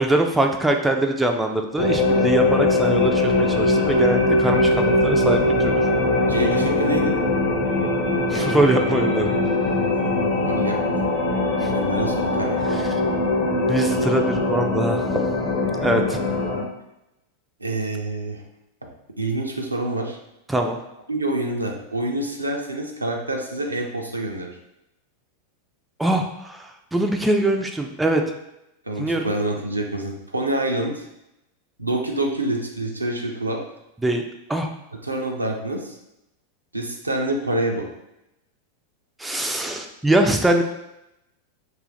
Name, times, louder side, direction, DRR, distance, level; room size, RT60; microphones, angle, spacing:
voice 1, 0.0-5.7 8.3-9.3 11.6-11.7 12.7-13.0 13.7-15.2 15.8-16.2 20.5-20.8 26.0-28.2 29.0-29.3 34.0-34.2 34.5-34.7 39.2-40.6, right 1 dB, 5° right, 3 dB, 0.3 m, -22 dB
sound 1, 1.8-16.6, left 2 dB, 40° left, 0.8 m, -21 dB
voice 2, 6.1-7.2 10.0-11.1 11.7-12.6 16.1-16.2 17.6-18.4 18.8-18.9 19.2-20.2 21.1-24.6 28.8-31.0 31.8-33.6 35.0-36.0 36.7-37.9, right 1 dB, 80° right, 1 dB, 0.5 m, -27 dB
2.7 x 2.4 x 3.8 m, 0.87 s
figure-of-eight pair, 90°, 0 cm